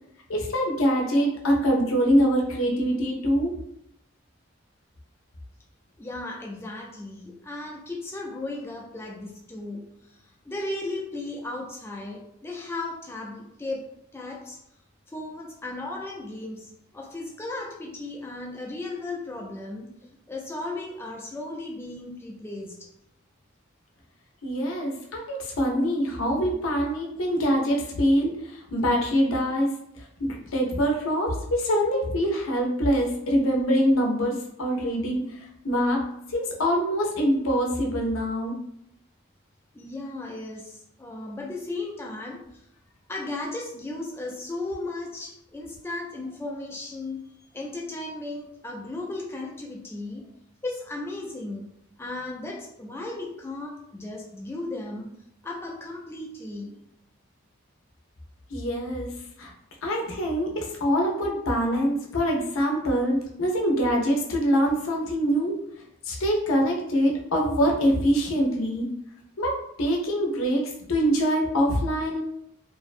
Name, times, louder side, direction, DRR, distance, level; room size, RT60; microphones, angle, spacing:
voice 1, 0.3-3.5 24.4-36.0 36.3-38.6 58.5-59.1 59.4-59.5 59.8-65.5 66.0-68.9 69.4-72.2, equal, 80° left, 0 dB, 0.6 m, -24 dB
voice 2, 6.0-13.8 14.1-14.6 15.1-19.9 20.3-22.9 39.7-42.7 43.1-50.3 50.6-51.7 52.0-55.2 55.4-56.8, left 2 dB, 10° left, -1 dB, 0.3 m, -36 dB
2.6 x 2.0 x 2.4 m, 0.74 s
head